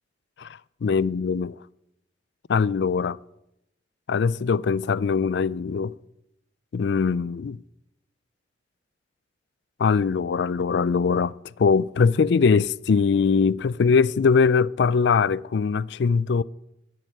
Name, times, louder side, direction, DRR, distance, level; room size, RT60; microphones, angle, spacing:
voice 1, 0.4-1.6 2.5-3.2 4.1-5.9 6.7-7.6 9.8-16.4, left 5 dB, 65° left, 0.4 m, -22 dB
11.0 x 7.8 x 10.0 m
head